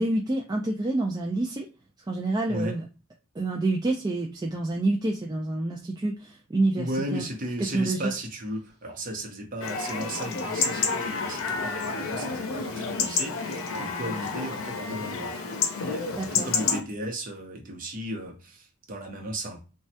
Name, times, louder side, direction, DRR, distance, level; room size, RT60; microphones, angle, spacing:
voice 1, 0.0-1.7 2.1-2.8 3.4-7.2 7.7-8.1 16.1-16.5, right 2 dB, 20° right, 0.3 m, -27 dB
voice 2, 6.8-15.3 15.8-19.6, equal, 40° right, 0.8 m, -35 dB
Chatter / Livestock farm animals working animals / Chirp tweet, 9.6-16.8, left 5 dB, 80° left, 0.6 m, -29 dB
3.1 x 2.2 x 2.7 m
head